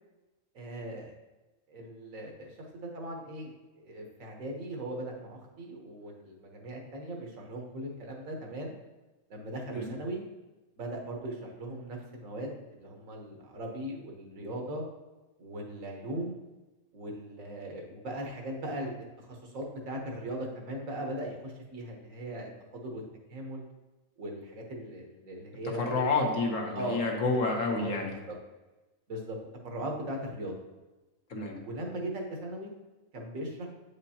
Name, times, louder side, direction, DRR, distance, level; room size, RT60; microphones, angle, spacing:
voice 1, 0.5-1.1 1.7-8.7 9.3-10.2 10.8-14.8 15.4-16.3 16.9-23.0 23.3-23.6 24.2-26.1 26.7-27.0 27.6-28.3 29.1-29.4 29.6-30.6 31.6-32.7 33.1-33.7, right 1 dB, 70° right, 1 dB, 1.5 m, -39 dB
voice 2, 25.8-28.1 31.3-31.6, left 3 dB, 65° left, 1 dB, 1.3 m, -29 dB
7.9 x 5.1 x 2.8 m, 1.1 s
omnidirectional pair, 1.5 m